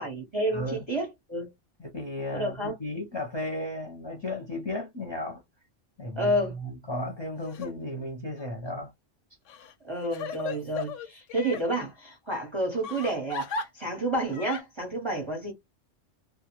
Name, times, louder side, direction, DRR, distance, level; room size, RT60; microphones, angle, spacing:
voice 1, 0.0-1.5 2.3-2.7 6.2-6.6 9.8-15.5, right 1 dB, 30° right, 0.7 m, -30 dB
voice 2, 0.5-0.8 1.8-5.4 6.0-8.9, left 1 dB, 25° left, 0.6 m, -34 dB
Crying sobbing, 7.4-7.7 8.3-8.5 9.5-11.6 12.8-13.7 14.3-14.6, left 4 dB, 75° left, 1.0 m, -36 dB
2.4 x 2.0 x 2.9 m
omnidirectional pair, 1.3 m